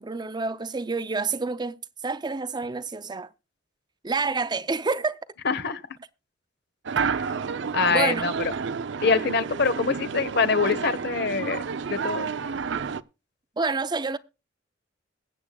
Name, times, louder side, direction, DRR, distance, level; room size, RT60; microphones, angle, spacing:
voice 1, 0.0-3.3 4.0-5.2 7.9-8.3 13.6-14.2, right 4 dB, 25° right, 0.5 m, -28 dB
voice 2, 5.4-5.8 7.7-8.3 9.0-11.6 11.9-12.3, left 4 dB, 60° left, 1.1 m, -24 dB
sound 1, 6.9-13.0, right 5 dB, 70° right, 0.5 m, -30 dB
21.5 x 8.4 x 2.3 m
head